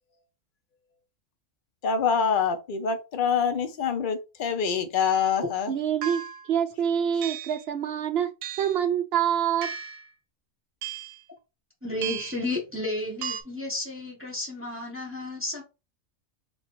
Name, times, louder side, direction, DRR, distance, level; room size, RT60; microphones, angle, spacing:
voice 1, 1.8-5.7, left 6 dB, 45° left, 0.7 m, -25 dB
sound 1, 5.0-5.2 6.0-6.5 7.2-7.6 8.4-8.8 9.6-10.1 10.8-11.2 12.0-12.5 13.2-13.4, right 8 dB, 85° right, 1.1 m, -35 dB
voice 2, 5.7-8.3 8.6-9.7, right 9 dB, 60° right, 0.8 m, -26 dB
voice 3, 11.8-15.6, left 2 dB, 10° right, 1.1 m, -32 dB
3.8 x 2.6 x 4.6 m
omnidirectional pair, 1.4 m